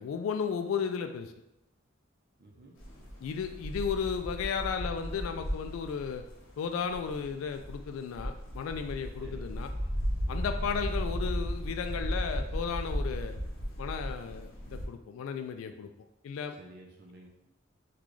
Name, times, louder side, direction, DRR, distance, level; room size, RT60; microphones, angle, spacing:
voice 1, 0.0-1.3 3.2-6.2 6.6-9.7 10.3-13.4 13.8-15.9 16.2-16.6, left 6 dB, 85° left, 8 dB, 0.3 m, -34 dB
voice 2, 2.4-2.8 9.2-9.6 10.3-10.5 16.6-17.3, right 1 dB, 55° right, -1 dB, 0.6 m, -52 dB
sound 1, 2.8-14.9, equal, 70° left, 0.9 m, -35 dB
3.8 x 2.3 x 3.1 m, 0.86 s
head